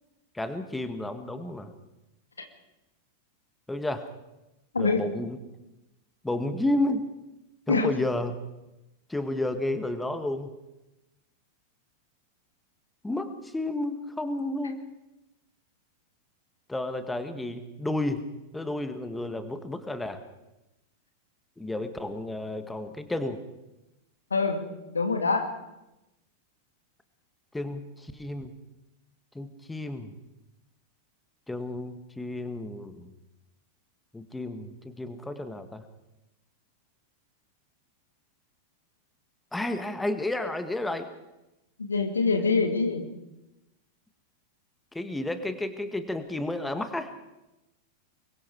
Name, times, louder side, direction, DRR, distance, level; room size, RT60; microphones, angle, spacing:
voice 1, 0.3-1.7 3.7-4.1 4.8-5.4 6.2-7.1 7.7-8.3 9.1-10.5 13.0-14.8 16.7-18.2 18.5-20.2 21.6-23.4 27.5-28.5 29.4-30.1 31.5-33.1 34.1-35.8 39.5-41.1 44.9-47.1, left 1 dB, 5° left, 9 dB, 1.8 m, -31 dB
voice 2, 4.7-5.1 7.7-7.9 24.3-24.7 24.9-25.5 41.8-43.0, left 4 dB, 75° left, 6 dB, 2.4 m, -25 dB
25.0 x 22.5 x 4.8 m, 0.95 s
figure-of-eight pair, 90°, 0 cm